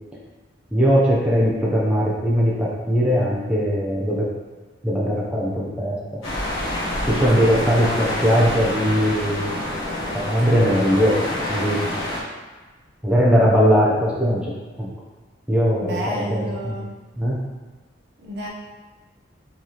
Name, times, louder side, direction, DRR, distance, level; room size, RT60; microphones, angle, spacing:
voice 1, 0.7-4.3 4.8-6.2 7.0-9.6 10.1-11.8 13.0-14.5 14.8-14.9 15.5-16.8 17.2-17.4, equal, 5° right, -6 dB, 0.5 m, -20 dB
sound 1, 6.2-12.2, left 1 dB, 90° left, 1.2 m, -27 dB
voice 2, 15.8-16.9 18.3-18.5, right 1 dB, 55° right, -3 dB, 0.7 m, -30 dB
4.7 x 3.2 x 2.8 m, 1.3 s
head